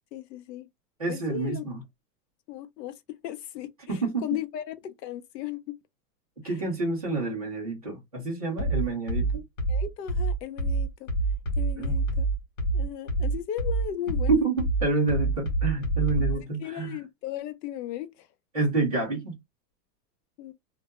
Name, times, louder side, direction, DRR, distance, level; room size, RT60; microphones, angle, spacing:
voice 1, 0.1-0.7 1.1-1.7 2.5-5.8 6.4-6.6 9.7-11.1 11.6-12.2 12.7-14.4 16.3-18.3 20.4-20.5, left 11 dB, 80° left, 0.6 m, -36 dB
voice 2, 1.0-1.8 3.9-4.3 6.4-9.4 11.8-12.0 14.3-14.6 14.8-17.0 18.5-19.4, right 3 dB, 25° right, 0.4 m, -28 dB
sound 1, 8.6-16.4, right 3 dB, 50° left, 0.9 m, -26 dB
2.1 x 2.0 x 2.8 m
supercardioid pair, 180°, 49 cm